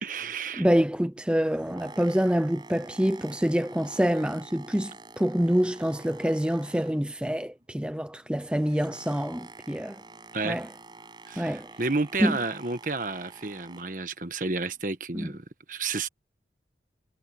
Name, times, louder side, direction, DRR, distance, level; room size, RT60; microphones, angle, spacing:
voice 1, 0.0-0.7 10.3-10.6 11.3-16.1, right 3 dB, 45° right, 1.4 m, -31 dB
voice 2, 0.6-10.0 10.4-10.7 11.4-11.7 12.2-12.4 15.1-15.3, equal, 5° right, 0.6 m, -26 dB
Boat Water vehicle, 1.2-7.3 7.6-14.1 14.7-14.8, right 3 dB, 25° right, 7.1 m, -47 dB
head